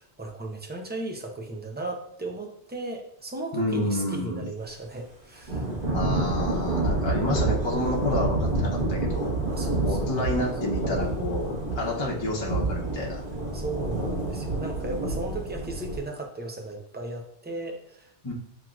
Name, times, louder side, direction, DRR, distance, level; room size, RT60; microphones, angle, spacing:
voice 1, 0.2-5.6 7.1-7.3 9.5-10.3 13.5-18.1, right 2 dB, 15° right, 2 dB, 0.3 m, -36 dB
voice 2, 3.5-4.5 5.9-9.3 9.8-13.2 18.2-18.3, left 2 dB, 25° left, -3 dB, 0.8 m, -29 dB
Thunder / Rain, 5.5-16.0, right 2 dB, 35° right, 1.5 m, -28 dB
7.4 x 2.9 x 2.4 m, 0.71 s
omnidirectional pair, 1.1 m